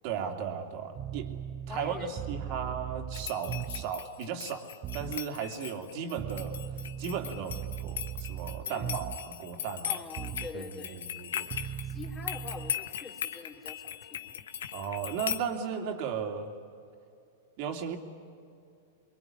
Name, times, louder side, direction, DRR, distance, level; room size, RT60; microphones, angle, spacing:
voice 1, 0.0-1.3 1.7-4.7 4.9-6.6 7.0-10.0 10.5-11.5 14.7-16.5 17.6-18.0, right 7 dB, 50° right, 4 dB, 2.9 m, -36 dB
sound 1, 1.0-4.0 4.8-5.2 6.2-9.4 10.2-10.6 11.5-12.7, right 10 dB, 35° right, 0.6 m, -38 dB
voice 2, 1.7-2.1 2.5-2.7 8.6-9.0 9.8-11.0 11.8-14.5, left 4 dB, 20° left, 0 dB, 3.2 m, -44 dB
sound 2, 3.1-15.4, left 9 dB, 75° left, 1.2 m, -39 dB
23.5 x 22.0 x 9.9 m, 2.5 s
hypercardioid pair, 115°, 0 cm